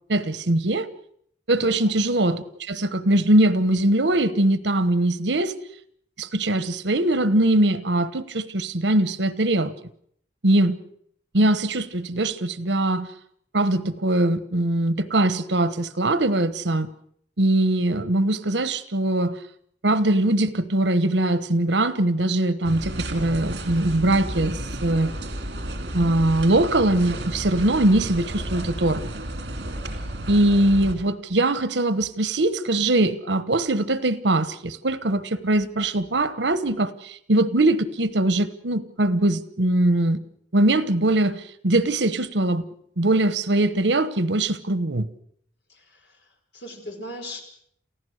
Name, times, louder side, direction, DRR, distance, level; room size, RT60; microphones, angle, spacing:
voice 1, 0.1-0.9 1.5-5.5 6.2-9.7 10.4-10.8 11.3-13.1 13.5-16.9 17.4-19.4 19.8-25.1 25.9-29.2 30.3-40.2 40.5-42.7 43.0-45.1, right 1 dB, 85° right, 1.2 m, -21 dB
sound 1, 22.6-31.0, right 1 dB, 65° right, 2.7 m, -32 dB
voice 2, 45.7-47.4, left 1 dB, 80° left, 5.3 m, -39 dB
28.5 x 15.5 x 6.6 m
head